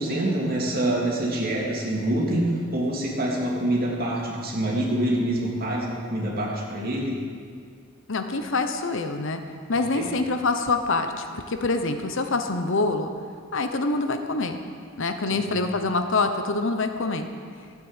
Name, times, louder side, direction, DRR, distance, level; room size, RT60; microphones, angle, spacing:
voice 1, 0.0-7.2 9.7-10.1 15.3-15.5, right 1 dB, 45° right, -3 dB, 2.8 m, -26 dB
voice 2, 8.1-9.4 9.7-13.1 13.5-14.6 15.0-17.3, left 3 dB, 60° left, 7 dB, 0.9 m, -25 dB
13.0 x 8.5 x 8.1 m, 2.1 s
head